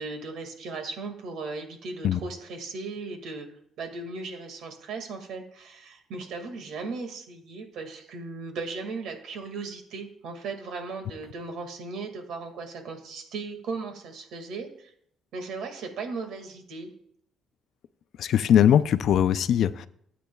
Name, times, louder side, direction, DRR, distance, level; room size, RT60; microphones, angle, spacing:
voice 1, 0.0-3.5 3.8-14.9 15.3-16.9, right 4 dB, 70° right, 5 dB, 2.0 m, -37 dB
voice 2, 18.2-19.9, left 9 dB, 65° left, 13 dB, 0.5 m, -21 dB
17.0 x 8.4 x 2.3 m, 0.68 s
cardioid pair, 110°, 0 cm